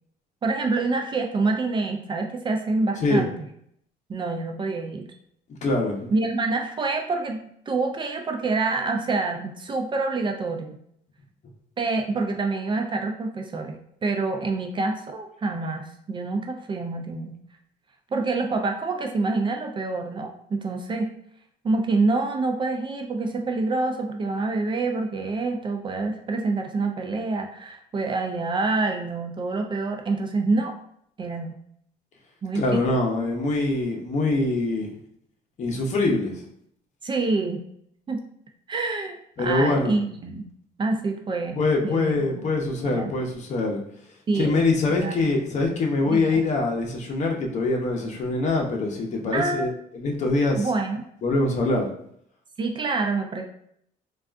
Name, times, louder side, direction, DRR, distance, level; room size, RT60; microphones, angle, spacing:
voice 1, 0.4-3.4 4.1-5.1 6.1-10.8 11.8-13.8 14.0-17.4 18.1-21.1 21.6-30.7 31.2-31.6 32.4-32.9 37.0-37.6 38.1-38.2 38.7-40.5 40.8-42.5 42.8-43.1 44.3-45.1 46.1-46.4 49.3-49.7 50.6-51.0 52.6-53.4, right 3 dB, 30° right, 4 dB, 0.4 m, -27 dB
voice 2, 5.6-6.1 32.5-34.9 35.6-36.4 39.4-39.9 41.6-43.8 44.3-50.7 51.2-51.9, left 2 dB, 45° left, 1 dB, 0.8 m, -24 dB
3.4 x 2.4 x 2.5 m, 0.70 s
cardioid pair, 110°, 17 cm